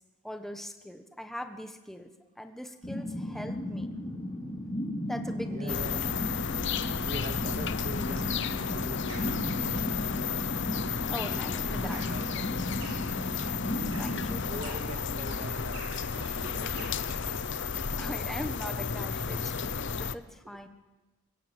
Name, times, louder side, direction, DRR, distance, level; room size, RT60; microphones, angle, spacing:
voice 1, 0.2-3.9 5.1-6.1 11.1-12.0 13.8-14.8 18.0-20.7, equal, ahead, 7 dB, 1.2 m, -41 dB
sound 1, 2.8-15.5, left 1 dB, 25° left, 3.8 m, -36 dB
voice 2, 5.5-6.1 7.0-9.4 10.1-10.3 11.1-12.8 14.4-17.0 20.5-20.6, right 1 dB, 40° right, 7 dB, 1.8 m, -43 dB
sound 2, 5.7-20.2, left 6 dB, 55° left, 0.8 m, -33 dB
sound 3, 8.1-17.1, right 3 dB, 75° right, 5.0 m, -51 dB
25.0 x 15.5 x 7.8 m, 1.1 s
head